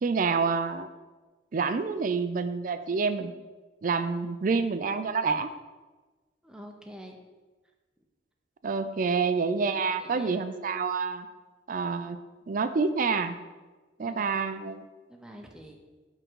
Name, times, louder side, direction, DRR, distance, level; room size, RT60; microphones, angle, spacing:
voice 1, 0.0-0.9 1.5-3.3 3.8-5.5 8.6-11.3 11.7-12.2 12.5-13.3 14.0-14.8, right 5 dB, 50° right, 11 dB, 0.4 m, -27 dB
voice 2, 6.4-7.2 10.0-10.4 14.0-14.4 15.1-15.8, equal, 5° right, 2 dB, 0.8 m, -46 dB
9.8 x 3.8 x 4.6 m, 1.3 s
head